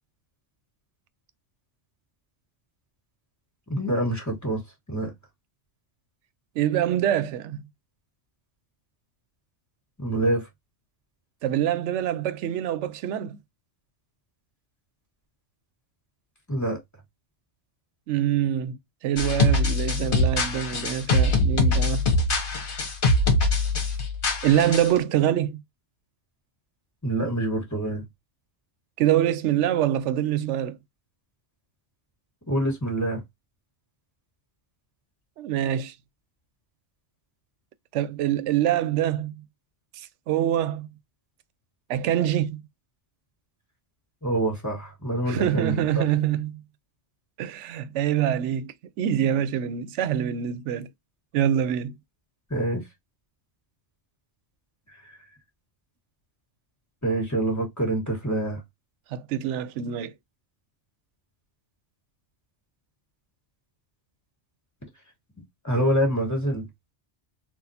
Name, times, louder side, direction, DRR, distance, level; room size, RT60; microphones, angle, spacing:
voice 1, 3.7-4.6 4.9-5.1 10.0-10.5 16.5-16.8 27.0-28.1 32.5-33.2 44.2-46.0 52.5-52.8 55.0-55.2 57.0-58.6 65.4-66.7, right 1 dB, 15° left, 1.4 m, -26 dB
voice 2, 6.6-7.6 11.4-13.4 18.1-18.8 19.0-22.0 24.4-25.6 29.0-30.8 35.4-35.9 37.9-39.4 40.0-40.9 41.9-42.6 45.3-46.6 47.4-50.9 51.3-52.0 59.1-60.1, right 11 dB, 85° right, 0.9 m, -25 dB
sound 1, 19.2-25.0, left 2 dB, 50° left, 1.1 m, -23 dB
4.0 x 2.3 x 2.7 m
omnidirectional pair, 1.2 m